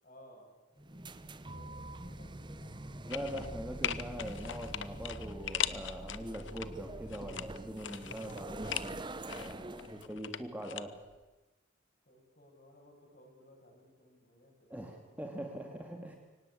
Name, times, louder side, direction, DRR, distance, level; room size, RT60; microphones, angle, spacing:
voice 1, 0.0-3.3 12.1-15.2 15.6-15.7, equal, 40° left, 1 dB, 7.7 m, -60 dB
sound 1, 0.8-10.1, right 2 dB, 25° right, 0.9 m, -47 dB
sound 2, 1.4-8.6, equal, 45° right, 4.4 m, -49 dB
voice 2, 3.0-9.0 9.2-11.0 14.7-16.2, equal, 10° right, 2 dB, 2.4 m, -42 dB
sound 3, 3.1-3.5 3.8-6.7 7.1-8.9 9.3-10.8 11.1-11.2, left 10 dB, 65° left, 1.0 m, -39 dB
24.0 x 18.5 x 8.6 m, 1.1 s
head